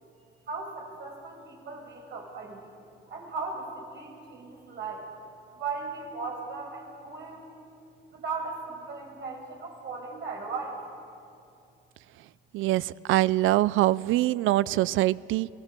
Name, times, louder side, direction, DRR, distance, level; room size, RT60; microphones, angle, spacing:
voice 1, 0.5-2.7 3.1-5.1 5.5-7.5 8.1-10.8, right 4 dB, 65° right, 0 dB, 5.5 m, -37 dB
voice 2, 12.5-15.5, right 16 dB, 85° right, 20 dB, 0.5 m, -24 dB
28.5 x 16.5 x 6.7 m, 2.6 s
cardioid pair, 90°, 20 cm